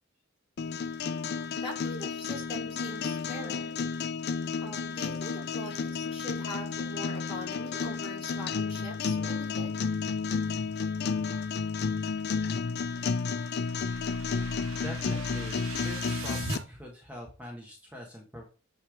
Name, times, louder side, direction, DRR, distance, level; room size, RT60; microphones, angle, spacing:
sound 1, 0.6-16.6, left 5 dB, 55° left, 0.4 m, -32 dB
voice 1, 1.6-3.8 4.6-9.8, equal, 30° left, -1 dB, 2.3 m, -42 dB
sound 2, 12.7-16.6, right 3 dB, 85° right, 1.4 m, -41 dB
voice 2, 14.8-18.4, left 1 dB, 5° right, -1 dB, 1.3 m, -43 dB
9.3 x 3.3 x 4.9 m, 0.38 s
head